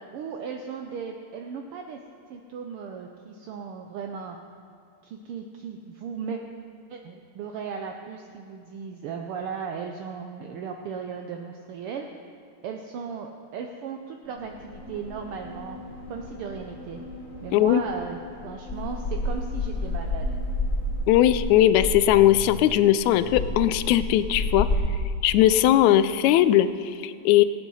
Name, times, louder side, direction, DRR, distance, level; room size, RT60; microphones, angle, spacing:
voice 1, 0.1-2.0 2.3-4.4 5.0-6.4 6.9-12.1 12.6-15.8 16.1-17.0 17.4-20.4, right 6 dB, 80° right, 3 dB, 1.3 m, -36 dB
sound 1, 14.2-22.1, left 2 dB, 70° left, 3.0 m, -43 dB
voice 2, 17.5-17.8 21.1-24.7 25.2-27.4, left 12 dB, 85° left, 13 dB, 1.9 m, -19 dB
sound 2, 18.7-24.8, left 2 dB, 15° left, 1.5 m, -29 dB
17.5 x 8.9 x 5.5 m, 2.4 s
omnidirectional pair, 3.3 m